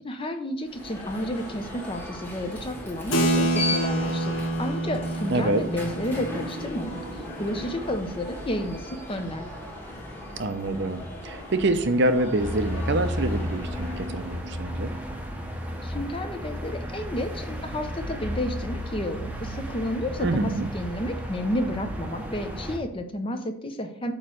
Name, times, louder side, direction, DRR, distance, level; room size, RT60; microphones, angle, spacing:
voice 1, 0.0-9.5 15.8-24.1, left 1 dB, 25° left, 6 dB, 0.7 m, -31 dB
Alarm, 0.6-14.6, left 1 dB, 10° left, 1.4 m, -37 dB
Keyboard (musical), 3.1-9.1, right 1 dB, 75° left, 1.2 m, -29 dB
voice 2, 5.3-5.6 10.4-14.9 20.2-20.7, right 2 dB, 55° right, 9 dB, 0.6 m, -26 dB
sound 1, 12.4-22.8, equal, 5° right, 0.8 m, -33 dB
8.6 x 3.1 x 6.3 m, 0.67 s
head